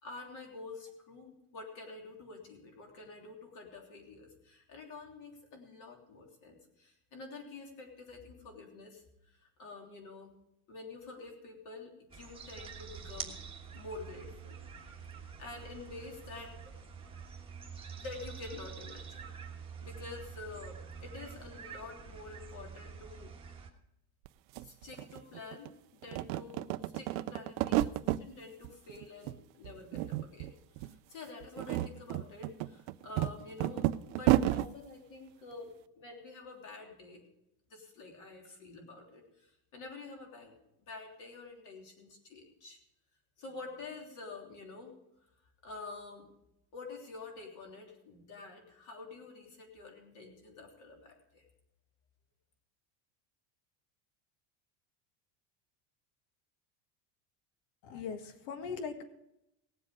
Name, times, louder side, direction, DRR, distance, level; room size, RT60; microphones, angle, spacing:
voice 1, 0.0-10.4 10.7-13.4 13.7-14.6 14.9-16.7 18.0-19.3 19.8-23.3 24.6-37.2 37.7-40.6 40.9-42.8 43.4-45.0 45.6-46.3 46.7-51.4, left 3 dB, 40° left, 1 dB, 3.3 m, -48 dB
sound 1, 12.1-23.7, right 6 dB, 10° right, 1.4 m, -47 dB
sound 2, 24.2-24.3 24.5-25.7 26.0-28.2 28.6-29.4 29.6-30.5 30.8-30.9 31.4-34.7, right 15 dB, 65° right, 0.6 m, -31 dB
voice 2, 57.8-59.0, left 5 dB, 65° left, 7 dB, 1.8 m, -40 dB
18.5 x 7.7 x 4.9 m, 0.84 s
cardioid pair, 170°, 45 cm